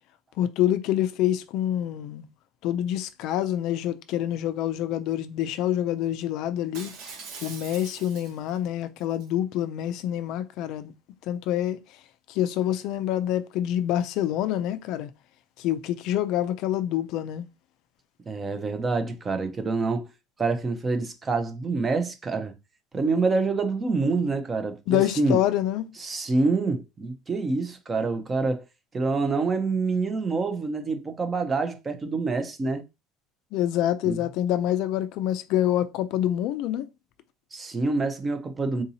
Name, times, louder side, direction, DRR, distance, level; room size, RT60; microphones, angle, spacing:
voice 1, 0.4-2.3 2.6-6.9 7.4-10.9 11.3-11.8 12.3-15.1 15.6-17.4 24.9-25.9 33.5-36.9, left 12 dB, 55° left, 0.3 m, -26 dB
Shatter, 6.7-8.6 9.0-9.3, right 5 dB, 60° right, 1.3 m, -42 dB
voice 2, 18.3-20.1 20.4-22.5 22.9-25.4 26.0-28.6 28.9-32.8 34.0-34.2 37.5-38.8, right 3 dB, 15° right, 0.5 m, -26 dB
3.7 x 2.7 x 2.7 m
cardioid pair, 165°, 0 cm